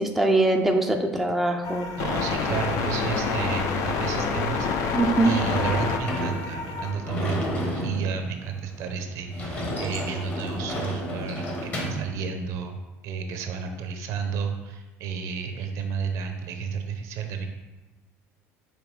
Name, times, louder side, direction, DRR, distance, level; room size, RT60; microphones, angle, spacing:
voice 1, 0.0-1.9 4.9-5.4, right 2 dB, ahead, 3 dB, 0.3 m, -22 dB
sound 1, 1.6-6.9, left 4 dB, 60° left, 0.5 m, -27 dB
voice 2, 2.0-5.0 5.2-12.8 13.0-17.5, right 6 dB, 65° right, 6 dB, 0.6 m, -31 dB
Sliding door / Slam, 5.4-12.1, left 1 dB, 30° left, 0.9 m, -32 dB
5.3 x 2.8 x 3.2 m, 1.1 s
cardioid pair, 125°, 6 cm